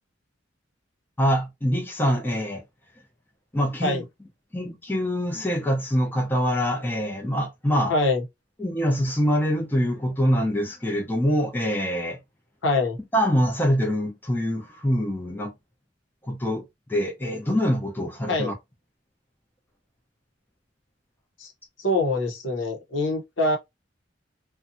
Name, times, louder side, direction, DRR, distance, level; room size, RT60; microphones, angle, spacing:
voice 1, 1.2-2.6 3.5-4.0 4.5-7.9 8.6-12.2 13.1-15.5 16.3-16.6 16.9-18.5, equal, 10° left, 0.7 m, -24 dB
voice 2, 7.9-8.2 12.6-13.0 18.3-18.5 21.4-21.5 21.8-23.6, left 2 dB, 85° left, 0.9 m, -24 dB
2.6 x 2.3 x 2.6 m
head